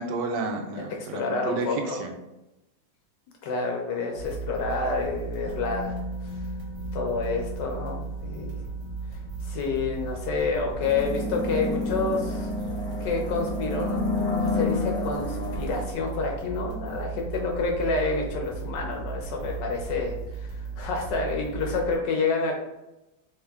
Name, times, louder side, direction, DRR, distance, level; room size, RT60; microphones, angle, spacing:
voice 1, 0.0-2.1, right 3 dB, 75° right, 4 dB, 1.2 m, -31 dB
voice 2, 1.1-2.0 3.4-6.0 6.2-6.4 6.9-8.7 9.4-12.5 13.0-22.6, left 4 dB, 75° left, 1 dB, 1.2 m, -29 dB
sound 1, 4.1-22.0, right 5 dB, 50° right, 1.1 m, -36 dB
Musical instrument, 5.4-13.3 13.6-13.8, left 4 dB, 20° right, 0.9 m, -43 dB
sound 2, 10.8-15.8, left 2 dB, 5° left, 0.3 m, -29 dB
3.4 x 2.8 x 3.3 m, 0.96 s
omnidirectional pair, 2.0 m